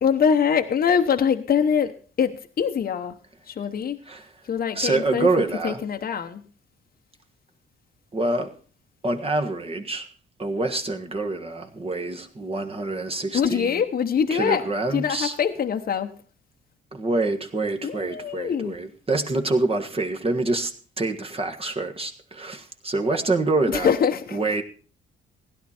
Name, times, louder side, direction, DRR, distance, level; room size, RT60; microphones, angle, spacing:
voice 1, 0.0-1.9 2.2-3.1 3.5-4.0 4.5-5.3 5.6-6.4 13.3-14.6 14.9-16.1 17.8-18.8 23.7-24.4, left 7 dB, 50° left, 1.0 m, -23 dB
voice 2, 4.7-5.8 8.1-8.5 9.0-10.1 10.4-13.8 14.3-15.3 16.9-20.7 21.0-23.9 24.3-24.6, right 2 dB, 30° right, 1.5 m, -26 dB
16.0 x 11.0 x 4.3 m
cardioid pair, 90°, 20 cm